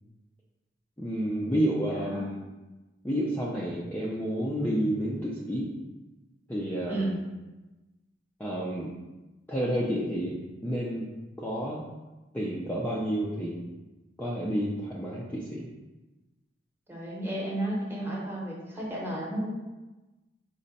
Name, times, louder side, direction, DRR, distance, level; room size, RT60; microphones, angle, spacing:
voice 1, 1.0-2.4 3.0-5.7 6.5-7.2 8.4-8.9 9.5-10.4 10.6-11.1 11.4-11.8 12.3-13.6 14.2-15.7, equal, 10° left, -6 dB, 0.4 m, -30 dB
voice 2, 16.9-19.5, right 1 dB, 10° right, -4 dB, 0.9 m, -32 dB
5.0 x 2.2 x 4.0 m, 1.1 s
head